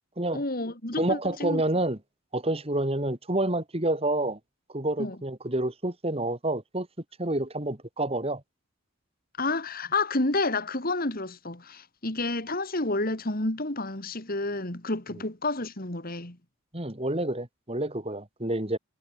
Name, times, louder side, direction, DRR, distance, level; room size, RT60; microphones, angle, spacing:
voice 1, 0.3-1.6 5.0-5.2 9.4-16.4, left 2 dB, 40° left, 2.7 m, -30 dB
voice 2, 1.0-2.0 2.3-4.4 4.7-6.9 7.2-8.4 16.7-18.8, right 1 dB, 25° right, 2.5 m, -28 dB
head